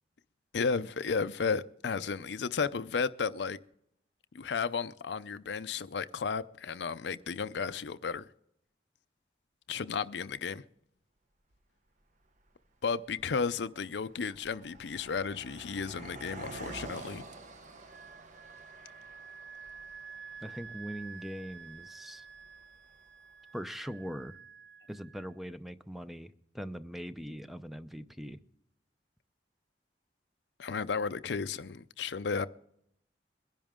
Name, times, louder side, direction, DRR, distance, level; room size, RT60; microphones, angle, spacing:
voice 1, 0.5-3.6 4.3-8.2 9.7-10.6 12.8-17.2 30.6-32.5, left 5 dB, 75° left, 0.5 m, -33 dB
Car passing by, 11.5-11.6 12.4-12.7 12.9-23.3, right 2 dB, 45° right, 1.0 m, -49 dB
Wind instrument woodwind instrument, 17.9-25.3, right 6 dB, 75° right, 0.4 m, -50 dB
voice 2, 20.4-22.2 23.5-24.4 24.9-28.4, equal, ahead, 0.5 m, -41 dB
22.5 x 10.5 x 3.7 m
head